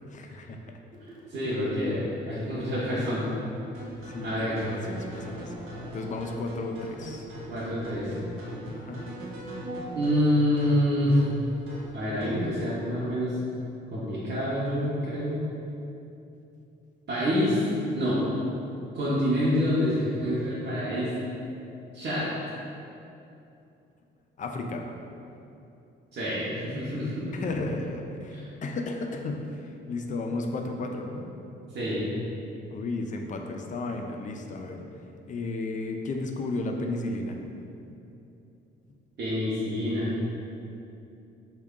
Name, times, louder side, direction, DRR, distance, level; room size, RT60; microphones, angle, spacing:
voice 1, 0.1-0.8 4.0-5.5 5.8-7.3 8.7-9.1 24.4-24.9 27.3-31.3 32.7-34.9 35.3-37.4, left 2 dB, 40° left, 3 dB, 0.4 m, -34 dB
sound 1, 0.9-10.3, right 5 dB, 25° right, 0.7 m, -47 dB
voice 2, 1.3-3.3 4.2-4.6 7.5-8.1 9.6-11.2 11.9-13.4 13.9-15.4 17.1-17.6 17.9-18.2 18.9-21.2 21.9-22.3 26.1-27.3 28.3-28.5 31.7-32.1 39.2-40.1, equal, 55° right, -10 dB, 0.8 m, -27 dB
sound 2, 3.7-12.5, equal, 85° right, 0.6 m, -41 dB
3.4 x 2.3 x 3.6 m, 2.8 s
cardioid pair, 90°, 20 cm